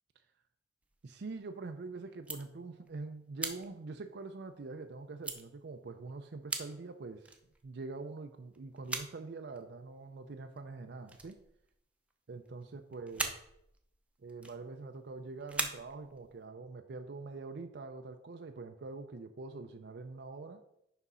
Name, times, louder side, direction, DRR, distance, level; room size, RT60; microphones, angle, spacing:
sound 1, 0.8-1.7 2.1-3.0 3.4-4.8 5.2-5.4 6.1-6.2 6.5-6.8 7.2-8.0 8.5-9.3 9.5-9.9 10.6-10.8 11.0-12.1 12.4-12.7 12.9-15.1 15.4-16.4, right 2 dB, 5° right, 0.7 m, -41 dB
voice 1, 1.0-7.3 7.6-11.4 12.3-13.3 14.2-20.6, right 3 dB, 65° right, 7 dB, 0.5 m, -44 dB
6.1 x 5.1 x 5.5 m, 0.78 s
head